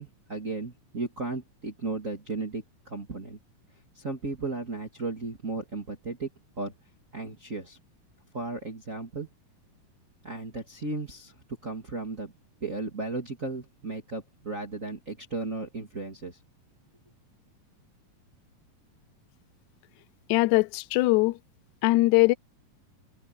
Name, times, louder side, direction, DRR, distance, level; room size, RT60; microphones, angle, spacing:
voice 1, 0.0-3.4 4.0-6.3 6.6-6.7 7.1-7.8 8.3-9.3 10.2-11.3 11.6-12.3 12.6-16.4, right 3 dB, 25° right, 2.2 m, -35 dB
voice 2, 20.3-21.4 21.8-22.3, left 20 dB, 80° left, 1.8 m, -21 dB
omnidirectional pair, 3.9 m